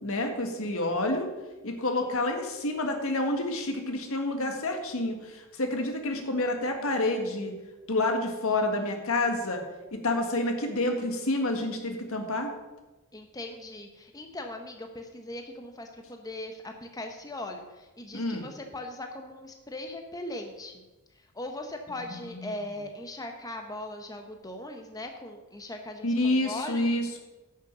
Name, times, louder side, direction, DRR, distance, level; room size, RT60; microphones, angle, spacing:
voice 1, 0.0-1.3 1.6-7.5 7.9-9.6 9.9-12.5 18.1-18.5 21.9-22.6 26.0-27.2, left 2 dB, 70° left, 4 dB, 1.7 m, -29 dB
voice 2, 13.1-20.8 21.3-26.9, left 1 dB, 15° left, 4 dB, 0.8 m, -39 dB
10.0 x 6.5 x 6.7 m, 1.1 s
head